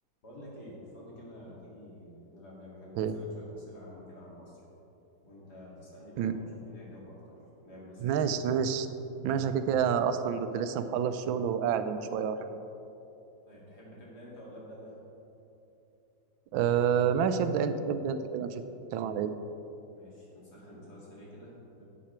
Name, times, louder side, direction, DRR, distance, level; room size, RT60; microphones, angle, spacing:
voice 1, 0.2-4.6 5.2-8.2 9.9-10.0 13.5-15.0 19.9-21.8, left 1 dB, 55° left, -5 dB, 3.0 m, -49 dB
voice 2, 8.0-8.9 9.2-12.6 16.5-18.6 18.9-19.3, right 7 dB, 85° right, 10 dB, 1.4 m, -28 dB
11.5 x 7.4 x 4.4 m, 2.9 s
omnidirectional pair, 2.1 m